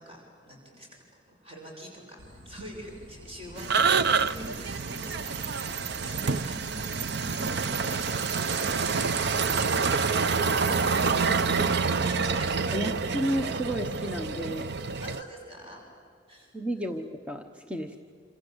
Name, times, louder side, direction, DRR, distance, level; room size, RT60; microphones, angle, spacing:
voice 1, 0.0-13.0 15.0-15.8 16.3-16.5, right 1 dB, 30° right, -1 dB, 6.2 m, -44 dB
sound 1, 2.2-15.0, left 1 dB, 85° right, 2.5 m, -49 dB
sound 2, 3.6-15.2, right 5 dB, 60° right, 0.7 m, -27 dB
voice 2, 12.7-14.7 16.5-18.0, right 1 dB, 5° right, 4 dB, 1.0 m, -32 dB
28.0 x 26.5 x 8.0 m, 2.3 s
head